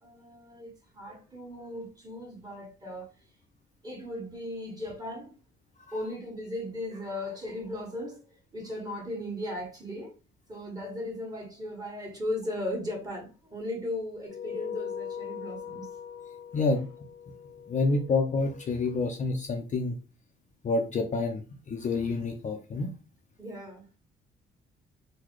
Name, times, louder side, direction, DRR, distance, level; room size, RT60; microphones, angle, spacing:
voice 1, 0.0-3.1 3.8-5.4 5.9-10.1 10.5-15.9 16.5-16.6 23.4-23.8, left 1 dB, 20° right, 1.6 m, -37 dB
sound 1, 14.3-19.1, left 7 dB, 85° left, 0.8 m, -41 dB
voice 2, 16.5-16.9 17.7-20.0 20.6-22.9, left 3 dB, 40° left, 0.5 m, -28 dB
3.8 x 2.1 x 3.1 m
cardioid pair, 90°, 20 cm